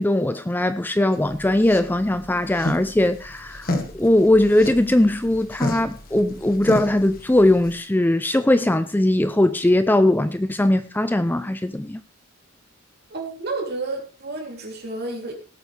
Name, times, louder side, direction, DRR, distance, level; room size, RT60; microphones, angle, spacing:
voice 1, 0.0-12.0, left 1 dB, 10° left, 0.4 m, -20 dB
sound 1, 1.1-7.7, left 1 dB, 45° left, 1.5 m, -32 dB
voice 2, 13.1-15.3, right 3 dB, 50° right, 3.3 m, -30 dB
18.5 x 8.4 x 3.4 m
head